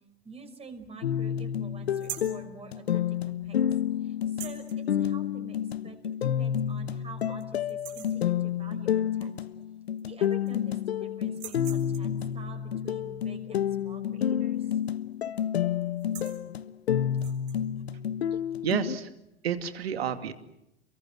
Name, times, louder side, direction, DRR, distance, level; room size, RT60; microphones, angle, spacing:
voice 1, 0.2-3.7 4.0-5.6 5.8-9.3 10.1-14.8 17.0-17.1, right 4 dB, 20° right, 5 dB, 5.3 m, -47 dB
sound 1, 1.0-19.0, left 9 dB, 80° left, 1.2 m, -29 dB
sound 2, 1.9-2.4 4.2-4.8 6.1-6.2 6.7-6.8 7.2-7.4 7.7-8.2 9.6-9.7 10.0-10.7 11.3-12.2 14.5-14.8 15.1-15.4 15.9-16.4 17.1-17.6, right 11 dB, 50° right, 6.7 m, -43 dB
voice 2, 18.6-19.1 19.4-20.3, right 8 dB, 75° right, 9 dB, 2.6 m, -30 dB
29.0 x 23.5 x 7.9 m, 0.84 s
hypercardioid pair, 95°, 31 cm